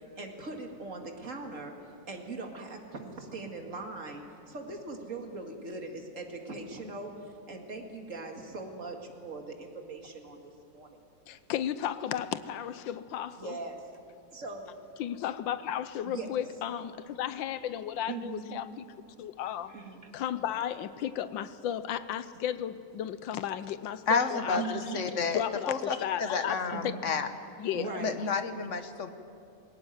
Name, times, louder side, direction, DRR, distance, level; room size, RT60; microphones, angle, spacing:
voice 1, 0.2-1.7 2.1-7.1 7.5-11.0 13.3-13.9 14.3-14.7 16.0-16.3 18.1-18.5 19.7-20.1 24.5-25.0 26.7-27.0 27.7-28.2, right 3 dB, 45° right, 2 dB, 2.5 m, -40 dB
voice 2, 11.3-13.6 15.0-18.8 19.2-19.7 20.1-24.8 25.3-26.6 26.8-26.9 27.6-27.9, left 10 dB, 85° left, 14 dB, 1.5 m, -34 dB
voice 3, 24.1-27.3 28.0-29.1, left 5 dB, 45° left, 9 dB, 1.3 m, -30 dB
21.0 x 18.0 x 9.1 m, 2.5 s
omnidirectional pair, 2.0 m